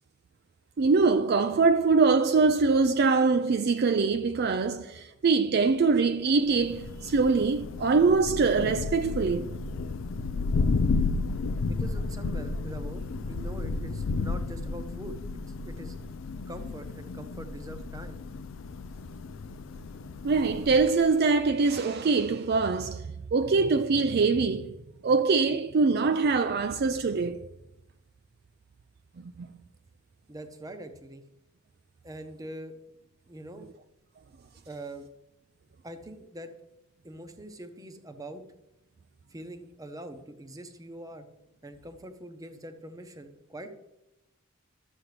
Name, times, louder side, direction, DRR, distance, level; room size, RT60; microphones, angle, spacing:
voice 1, 0.8-9.6 20.2-23.0 23.3-24.8 25.0-27.5 29.2-29.5, right 4 dB, 50° right, 0.4 m, -23 dB
Thunder, 6.5-21.1, left 3 dB, 70° left, 0.4 m, -32 dB
voice 2, 11.7-15.2 15.7-16.0 16.5-18.2 30.3-31.2 32.0-32.7 33.3-33.7 34.7-35.0 35.8-36.5 37.0-38.4 39.3-41.3 41.6-43.7, right 1 dB, 15° right, 0.8 m, -43 dB
13.0 x 7.3 x 3.3 m
head